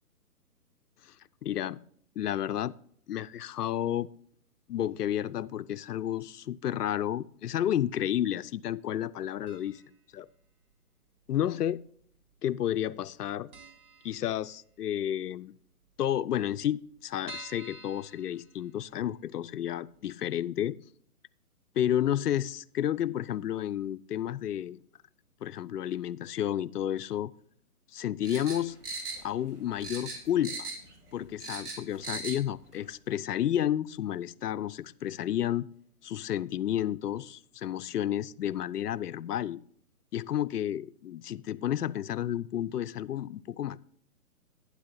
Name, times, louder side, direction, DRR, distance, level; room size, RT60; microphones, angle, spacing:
voice 1, 1.4-1.8 2.2-2.7 3.1-4.1 4.7-9.8 10.1-10.3 11.3-11.8 12.4-13.5 14.0-15.5 16.0-20.8 21.8-24.8 25.4-27.3 27.9-28.8 29.2-30.7 31.1-35.7 36.0-39.6 40.1-43.8, left 11 dB, 85° left, 0.6 m, -31 dB
sound 1, 9.5-10.0 10.2-10.3 11.3-12.0 12.3-12.4 12.7-12.8 13.2-13.3 13.5-14.8 15.2-15.3 15.6-15.7 15.9-16.0 16.5-19.1 19.5-19.6 20.0-20.1, right 1 dB, 65° right, 2.7 m, -49 dB
sound 2, 28.2-29.5 29.8-30.9 31.2-32.4 32.7-32.8, right 3 dB, 80° right, 3.2 m, -38 dB
11.5 x 9.8 x 2.7 m
hypercardioid pair, 150°, 46 cm